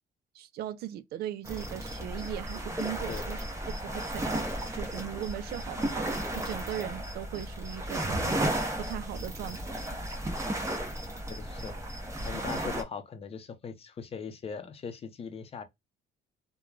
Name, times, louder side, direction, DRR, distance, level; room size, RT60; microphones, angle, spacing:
voice 1, 0.3-4.5 4.7-8.4 8.8-9.9, right 12 dB, 70° right, 0.4 m, -39 dB
sound 1, 1.4-12.8, right 1 dB, 15° right, 0.9 m, -34 dB
voice 2, 11.3-11.7 12.2-15.6, left 5 dB, 35° left, 0.6 m, -40 dB
3.0 x 2.2 x 2.3 m
cardioid pair, 110°, 17 cm